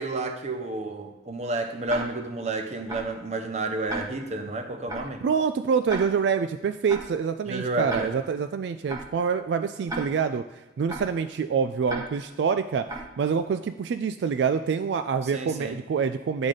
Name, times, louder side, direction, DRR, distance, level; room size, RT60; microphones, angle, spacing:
voice 1, 0.0-5.2 7.4-8.1 15.2-15.8, right 2 dB, 40° right, 6 dB, 0.7 m, -31 dB
Tick-tock, 1.9-2.0 2.9-3.0 3.9-4.0 4.9-5.0 5.9-6.0 6.9-7.0 7.9-8.0 8.9-9.0 9.9-10.0 10.9-11.0 11.9-12.0 12.9-13.0, right 2 dB, 20° right, 1.1 m, -32 dB
voice 2, 5.2-10.4 10.8-12.9 13.2-16.5, right 6 dB, 75° right, 10 dB, 0.3 m, -26 dB
8.9 x 4.0 x 4.9 m, 1.1 s
head